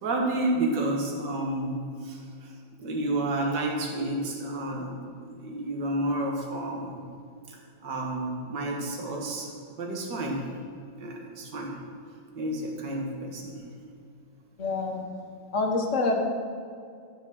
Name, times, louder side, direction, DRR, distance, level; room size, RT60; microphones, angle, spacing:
voice 1, 0.0-2.5 2.8-4.9 5.2-7.0 7.8-9.5 9.8-10.4 11.0-11.8 12.3-13.5, right 1 dB, 60° right, -1 dB, 2.3 m, -30 dB
voice 2, 14.6-15.0 15.5-16.2, left 3 dB, 40° left, 2 dB, 1.7 m, -26 dB
13.0 x 8.7 x 6.3 m, 2.4 s
omnidirectional pair, 2.2 m